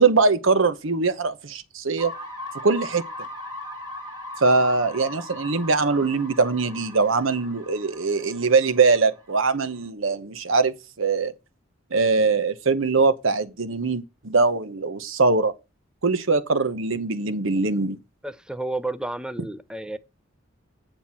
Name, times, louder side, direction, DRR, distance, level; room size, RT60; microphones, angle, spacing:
voice 1, 0.0-2.1 2.6-3.0 4.4-11.3 11.9-15.5 16.0-18.0, right 4 dB, 75° right, 0.9 m, -22 dB
sound 1, 2.0-9.8, left 1 dB, 20° right, 1.6 m, -39 dB
voice 2, 18.2-20.0, right 2 dB, 5° right, 0.5 m, -31 dB
9.3 x 4.4 x 5.6 m
head